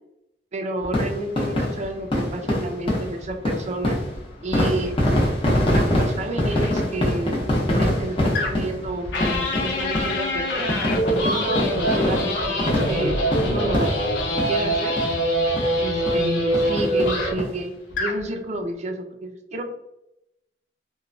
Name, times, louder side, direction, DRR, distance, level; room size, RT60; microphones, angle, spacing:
voice 1, 0.5-4.0 4.4-4.9 5.7-7.4 7.7-10.7 11.2-14.0 14.5-14.9 15.8-19.6, right 1 dB, 40° right, 5 dB, 0.4 m, -30 dB
sound 1, 0.8-14.7 15.0-15.1 15.6-15.7 16.1-16.2 16.5-17.5 17.9-18.0 18.2-18.3, left 1 dB, 30° left, 0.7 m, -24 dB
sound 2, 6.5-6.7 8.4-8.7 9.1-17.5 17.9-18.2, equal, 85° left, 0.5 m, -24 dB
2.9 x 2.2 x 2.5 m, 0.87 s
head